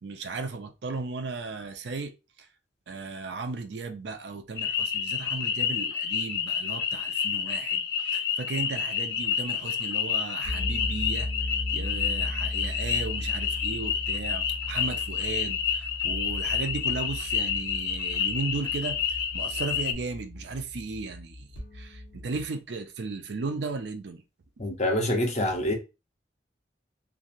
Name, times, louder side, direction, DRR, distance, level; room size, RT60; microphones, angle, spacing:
voice 1, 0.0-2.1 2.9-11.3 11.7-21.5 21.7-24.2, right 3 dB, 70° right, 0.5 m, -35 dB
sound 1, 4.6-19.9, left 7 dB, 60° left, 0.5 m, -29 dB
sound 2, 10.4-22.5, left 1 dB, 85° left, 1.2 m, -37 dB
voice 2, 24.6-25.7, left 1 dB, 40° left, 0.8 m, -26 dB
3.1 x 2.5 x 2.6 m
head